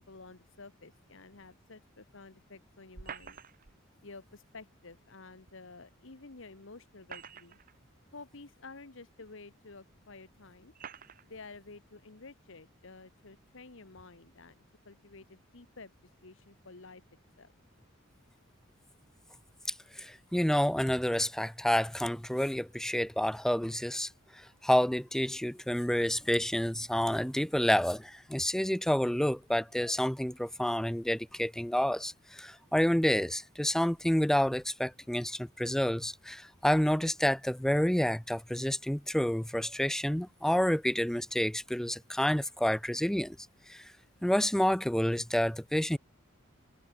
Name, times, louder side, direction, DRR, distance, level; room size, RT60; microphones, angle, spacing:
voice 1, 0.0-3.4 4.0-7.6 8.1-10.7 11.2-15.9 16.2-17.0 17.4-17.5, left 3 dB, 65° left, 1.3 m, -51 dB
sound 1, 2.9-3.8 5.5-5.6 6.8-7.8 8.6-8.7 9.7-9.8 10.7-11.3, right 6 dB, 40° right, 1.0 m, -46 dB
voice 2, 19.7-43.4 43.7-43.9 44.2-46.0, equal, ahead, 0.3 m, -29 dB
head